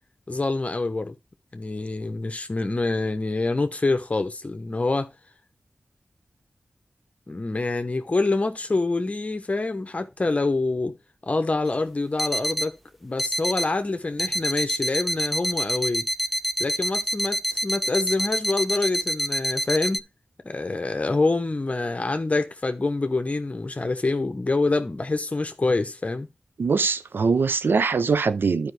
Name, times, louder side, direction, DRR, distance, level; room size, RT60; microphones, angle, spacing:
voice 1, 0.3-1.1 1.5-5.1 7.3-10.9 11.2-12.8 13.0-16.1 16.6-20.0 20.4-26.3, left 3 dB, 40° left, 0.9 m, -26 dB
sound 1, 11.7-11.8 12.2-12.7 13.2-13.7 14.2-20.0, equal, ahead, 0.5 m, -27 dB
voice 2, 26.6-28.7, right 5 dB, 75° right, 0.5 m, -22 dB
12.0 x 5.0 x 3.3 m
cardioid pair, 55°, 4 cm